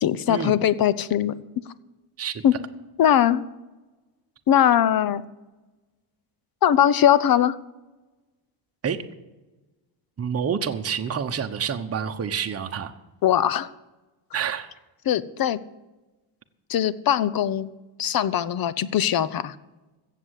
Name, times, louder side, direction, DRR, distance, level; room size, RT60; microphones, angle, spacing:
voice 1, 0.0-1.4 2.4-2.5 3.0-3.4 4.5-5.2 6.6-7.6 13.2-13.7 15.1-15.6 16.7-17.7 18.0-19.5, left 10 dB, 45° left, 16 dB, 0.7 m, -20 dB
voice 2, 10.2-12.9 14.3-14.7, right 7 dB, 30° right, 5 dB, 1.0 m, -28 dB
15.5 x 7.6 x 8.3 m, 1.1 s
cardioid pair, 145°, 49 cm